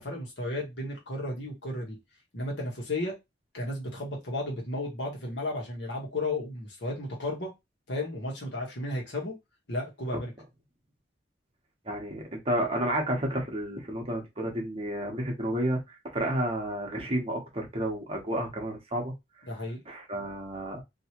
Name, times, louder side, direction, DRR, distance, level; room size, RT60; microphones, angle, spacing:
voice 1, 0.0-2.0 2.3-3.2 3.5-7.5 7.9-9.4 9.7-10.3 19.5-19.8, left 1 dB, 85° left, 1.4 m, -33 dB
voice 2, 11.8-19.1 19.9-20.8, right 1 dB, 35° right, 1.0 m, -31 dB
3.1 x 2.8 x 2.9 m
head